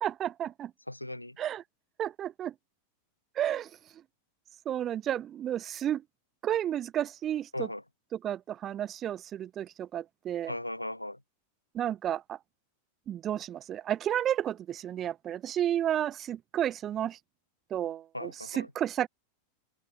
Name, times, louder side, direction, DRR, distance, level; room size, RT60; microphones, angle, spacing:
voice 1, 0.0-0.7 1.4-1.6 2.0-2.5 3.4-3.7 4.7-6.0 6.4-7.7 8.1-10.5 11.7-12.4 13.1-17.2 17.7-19.1, right 10 dB, 30° right, 0.4 m, -32 dB
voice 2, 0.9-1.4 7.5-7.8 10.5-11.2 18.1-18.7, left 1 dB, 85° left, 1.2 m, -37 dB
open air
figure-of-eight pair, 90°, 0 cm